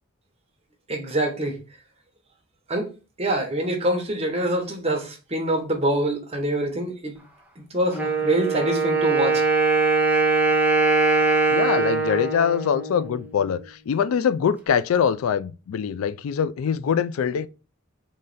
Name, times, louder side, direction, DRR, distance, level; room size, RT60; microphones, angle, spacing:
voice 1, 0.9-1.6 2.7-2.9 3.2-7.2 7.6-9.4, right 1 dB, 30° right, 1.1 m, -25 dB
Wind instrument woodwind instrument, 7.9-13.7, right 4 dB, 5° right, 0.7 m, -22 dB
voice 2, 11.5-17.5, left 7 dB, 80° left, 0.3 m, -23 dB
3.8 x 3.2 x 4.0 m
head